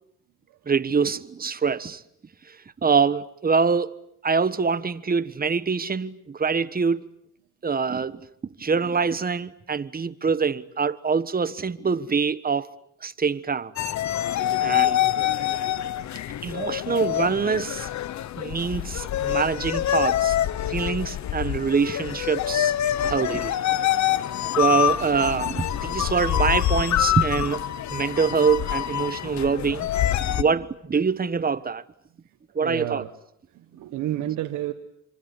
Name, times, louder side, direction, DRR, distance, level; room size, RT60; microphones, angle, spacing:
voice 1, 0.7-2.0 2.8-3.9 4.2-7.1 7.6-8.2 8.6-12.7 13.0-13.7 14.6-15.0 16.4-17.9 18.4-20.4 20.7-22.7 23.0-23.6 24.6-27.6 27.9-29.9 30.2-31.8 32.5-33.0, right 5 dB, 30° right, 1.3 m, -24 dB
sound 1, 13.8-30.4, left 12 dB, 65° left, 1.2 m, -26 dB
voice 2, 32.2-33.1 33.5-34.7, right 13 dB, 90° right, 1.5 m, -31 dB
27.0 x 25.0 x 8.5 m
cardioid pair, 90°, 30 cm